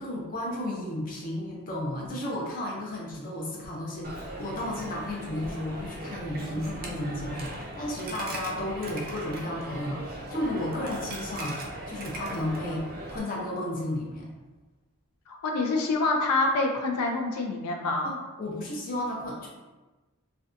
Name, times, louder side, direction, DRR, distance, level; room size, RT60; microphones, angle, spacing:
voice 1, 0.0-11.6 11.9-14.3 18.0-19.5, left 1 dB, 40° left, -2 dB, 0.6 m, -33 dB
Coin (dropping), 4.0-13.2, right 1 dB, 40° right, 0.4 m, -38 dB
voice 2, 15.3-18.1, left 3 dB, 90° left, 2 dB, 0.4 m, -26 dB
2.6 x 2.2 x 2.4 m, 1.2 s
head